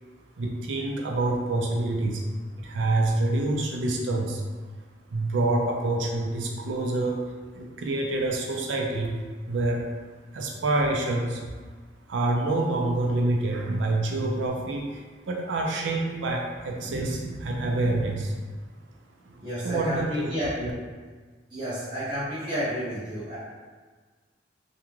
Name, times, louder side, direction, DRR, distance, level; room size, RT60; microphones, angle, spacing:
voice 1, 0.4-2.2 2.6-4.4 5.1-7.2 7.6-9.1 9.5-9.8 10.3-11.4 12.1-18.3 19.6-20.3 20.6-20.7, right 2 dB, 80° right, 0 dB, 0.4 m, -27 dB
voice 2, 19.4-20.5 21.5-23.4, equal, 25° right, -12 dB, 0.7 m, -30 dB
2.4 x 2.2 x 3.0 m, 1.4 s
head